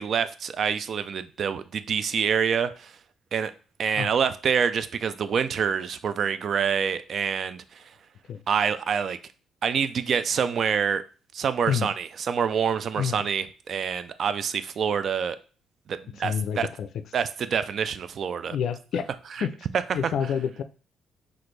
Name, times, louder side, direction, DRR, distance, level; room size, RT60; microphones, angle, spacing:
voice 1, 0.0-2.9 3.3-3.5 3.8-7.6 8.5-9.2 9.6-11.0 11.3-15.4 15.9-16.7 17.1-18.6 19.4-19.5 20.0-20.1, right 7 dB, 45° right, 0.3 m, -26 dB
voice 2, 16.2-16.9 18.5-19.1 19.4-19.5 19.9-20.6, left 8 dB, 60° left, 0.4 m, -28 dB
5.9 x 2.5 x 3.2 m
cardioid pair, 155°, 0 cm